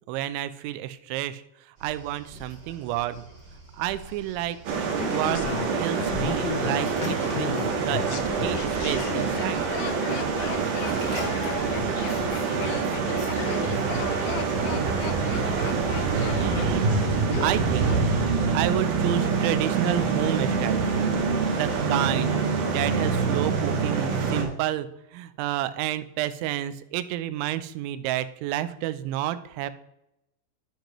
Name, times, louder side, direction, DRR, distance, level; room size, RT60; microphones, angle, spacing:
voice 1, 0.1-3.2 3.7-4.6 5.0-5.5 5.8-9.6 16.3-17.0 17.4-18.0 18.5-21.2 21.5-22.4 22.6-29.7, right 13 dB, 90° right, 13 dB, 2.9 m, -30 dB
Waves surf, 1.8-12.3, right 1 dB, 25° right, 3.9 m, -42 dB
sound 1, 4.7-24.4, right 4 dB, 65° right, 2.7 m, -26 dB
Laughter, 5.0-18.0 18.3-18.4, left 9 dB, 85° left, 3.0 m, -36 dB
voice 2, 10.7-15.7, left 2 dB, 70° left, -4 dB, 5.1 m, -42 dB
10.5 x 7.7 x 3.0 m, 0.85 s
omnidirectional pair, 5.2 m